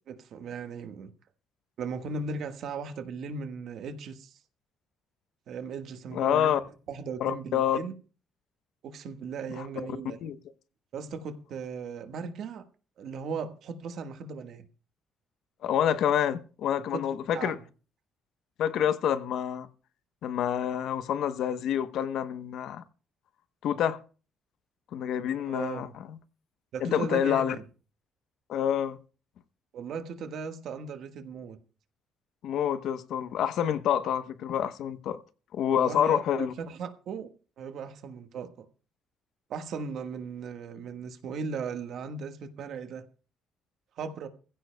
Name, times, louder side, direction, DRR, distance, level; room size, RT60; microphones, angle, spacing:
voice 1, 0.1-1.1 1.8-4.3 5.5-6.6 6.9-7.9 8.8-10.2 10.9-12.6 13.0-14.6 16.9-17.6 25.5-25.9 26.7-27.6 29.7-31.6 35.7-37.3 37.6-38.6 39.5-43.0 44.0-44.3, right 5 dB, 65° right, 1.4 m, -37 dB
voice 2, 6.1-6.6 7.2-7.8 9.6-9.7 10.2-10.4 15.6-17.6 18.6-19.7 20.2-22.8 23.6-24.0 24.9-26.2 26.8-27.6 28.5-29.0 32.4-35.2 35.5-36.5, left 9 dB, 70° left, 0.9 m, -27 dB
21.0 x 15.5 x 2.2 m
cardioid pair, 115°, 0 cm